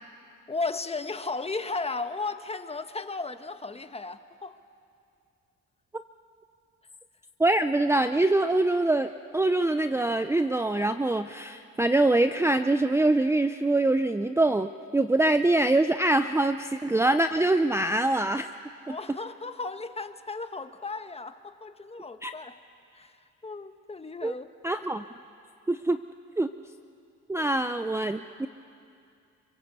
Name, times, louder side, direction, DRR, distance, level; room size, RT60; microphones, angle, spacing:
voice 1, 0.5-4.6 18.9-22.6 22.9-24.5 27.4-27.5, left 3 dB, 20° left, 9 dB, 1.3 m, -35 dB
voice 2, 7.4-18.5 18.9-19.0 22.2-22.3 24.2-24.3 24.6-25.0 25.7-26.0 26.4-26.5 27.3-28.5, right 2 dB, 10° right, 9 dB, 0.6 m, -24 dB
27.5 x 25.5 x 8.1 m, 2.5 s
cardioid pair, 90°, 30 cm